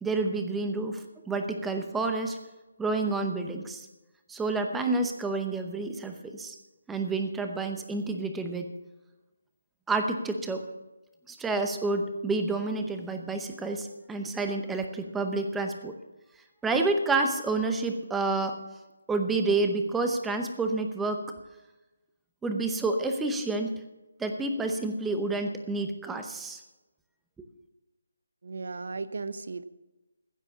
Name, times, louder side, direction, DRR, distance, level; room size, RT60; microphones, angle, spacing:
voice 1, 0.0-2.4 2.8-3.9 4.3-6.6 6.9-8.7 9.9-10.6 11.3-15.9 16.6-18.6 19.1-21.2 22.4-23.8 24.2-26.6, right 3 dB, 5° right, 5 dB, 0.8 m, -29 dB
voice 2, 28.4-29.6, right 4 dB, 60° right, 14 dB, 0.8 m, -36 dB
15.5 x 7.5 x 7.0 m, 1.1 s
hypercardioid pair, 170°, 0 cm